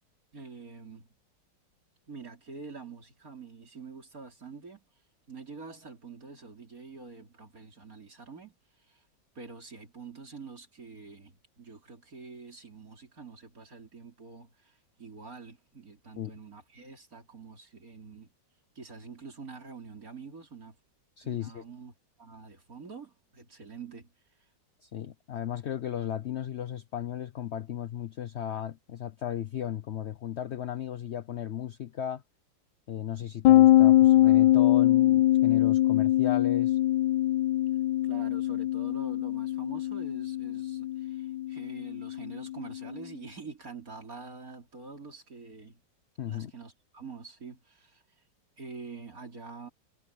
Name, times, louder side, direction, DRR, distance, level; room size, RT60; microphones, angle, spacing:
voice 1, 0.3-1.1 2.1-4.9 5.3-8.6 8.9-9.0 9.4-18.3 18.8-20.8 21.2-24.1 38.0-45.8 46.3-48.0 48.6-49.7, right 4 dB, 45° right, 4.1 m, -46 dB
voice 2, 21.2-21.6 24.8-32.2 32.9-36.8 46.2-46.5, left 10 dB, 60° left, 0.7 m, -35 dB
sound 1, 33.4-42.9, left 14 dB, 80° left, 1.3 m, -23 dB
omnidirectional pair, 2.0 m